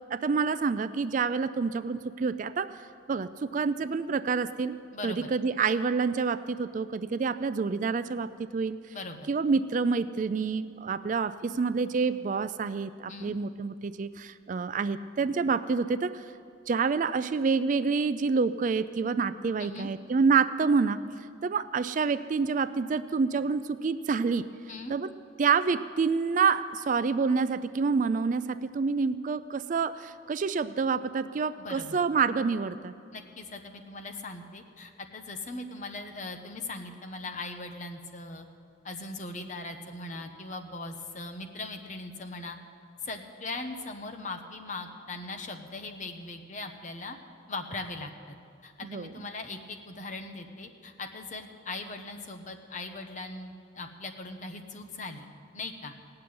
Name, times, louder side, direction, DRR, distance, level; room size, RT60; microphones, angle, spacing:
voice 1, 0.1-2.7 3.1-4.8 5.0-8.8 9.3-16.2 16.7-21.0 21.4-24.5 24.9-25.1 25.4-32.9 48.8-49.1, right 5 dB, 40° right, 13 dB, 0.3 m, -27 dB
voice 2, 4.9-5.3 8.9-9.3 13.1-13.3 19.6-19.9 24.7-25.0 31.6-32.0 33.1-38.5 38.8-42.6 43.0-47.2 47.5-48.4 48.6-55.9, left 2 dB, 40° left, 5 dB, 1.0 m, -40 dB
17.5 x 6.8 x 9.5 m, 2.3 s
head